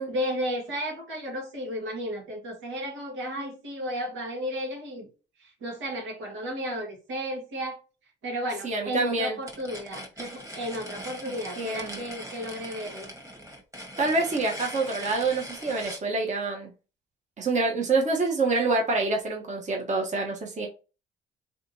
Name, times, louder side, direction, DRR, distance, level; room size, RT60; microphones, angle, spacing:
voice 1, 0.0-5.1 5.4-7.8 8.2-13.1, equal, 85° right, 2.0 m, -33 dB
voice 2, 8.6-9.3 11.2-12.0 14.0-16.7 17.4-20.7, right 3 dB, 35° right, 1.2 m, -27 dB
sound 1, 9.4-16.1, equal, 15° right, 1.6 m, -40 dB
3.6 x 3.5 x 2.8 m
cardioid pair, 90°, 20 cm